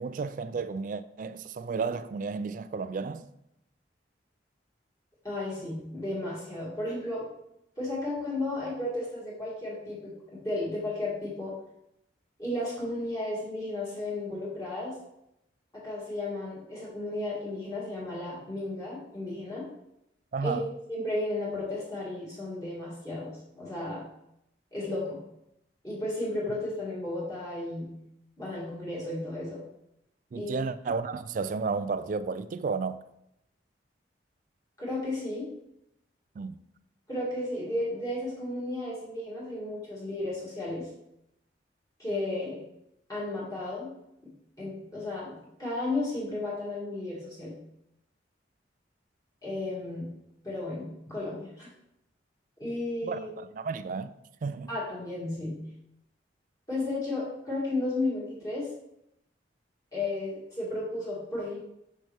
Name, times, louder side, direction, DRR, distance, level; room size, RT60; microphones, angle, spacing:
voice 1, 0.0-3.3 20.3-20.7 30.3-33.0 36.4-36.6 53.0-54.1 54.4-54.7, right 4 dB, 45° right, 0.3 m, -32 dB
voice 2, 5.2-7.2 7.8-11.5 12.4-15.0 15.7-19.7 20.4-24.0 24.7-25.2 25.8-27.9 28.4-29.6 30.3-30.6 34.8-35.4 37.1-40.9 42.0-42.6 43.1-43.9 44.6-47.5 49.4-50.1 50.4-51.7 52.6-53.3 54.7-55.6 56.7-58.7 59.9-61.6, left 2 dB, 20° left, 2.2 m, -33 dB
6.4 x 5.6 x 3.4 m
head